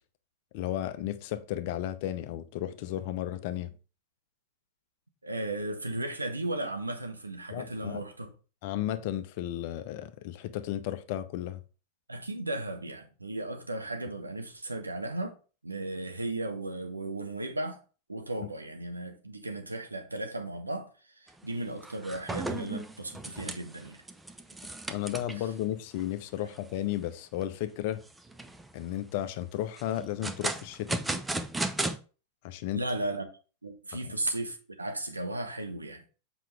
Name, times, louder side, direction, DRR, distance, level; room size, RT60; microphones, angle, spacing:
voice 1, 0.5-3.7 7.5-8.0 8.6-11.6 24.9-28.0 28.7-31.0 32.4-32.8 34.0-34.1, left 12 dB, 50° left, 0.7 m, -34 dB
voice 2, 5.2-8.3 12.1-15.3 15.6-17.8 18.1-24.0 25.4-25.5 32.7-33.3 33.6-36.0, right 2 dB, 80° right, 1.3 m, -35 dB
sound 1, 21.3-21.5 21.8-25.5 26.0-26.1 26.5-26.6 27.1-27.5 28.1-28.7 29.8-32.0, right 2 dB, 10° right, 0.7 m, -35 dB
7.6 x 5.1 x 3.3 m
figure-of-eight pair, 90°, 0 cm